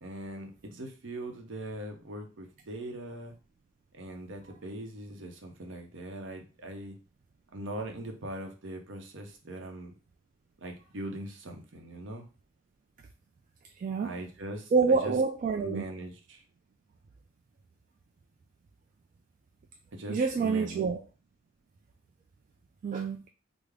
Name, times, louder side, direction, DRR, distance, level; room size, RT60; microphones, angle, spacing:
voice 1, 0.0-3.3 3.9-7.0 7.5-9.9 10.6-12.3 14.0-15.1 15.6-16.4 19.9-20.8, right 1 dB, 65° right, 0.7 m, -41 dB
voice 2, 13.8-14.1 14.7-15.8 20.1-21.0 22.8-23.3, right 5 dB, 45° right, 0.3 m, -27 dB
3.6 x 2.0 x 3.3 m
head